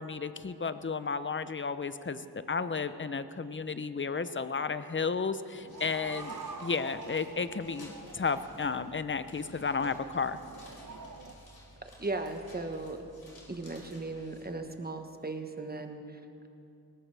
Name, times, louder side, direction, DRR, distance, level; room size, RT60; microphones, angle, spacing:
voice 1, 0.0-10.4, left 5 dB, 30° left, 12 dB, 0.7 m, -33 dB
sound 1, 5.5-11.3, right 4 dB, 55° right, 1.0 m, -46 dB
sound 2, 5.7-14.5, left 1 dB, 65° left, 4.1 m, -55 dB
voice 2, 12.0-13.0 13.5-16.5, right 2 dB, 25° right, 5 dB, 1.3 m, -37 dB
20.5 x 18.5 x 3.5 m, 2.7 s
wide cardioid pair, 65°, 38 cm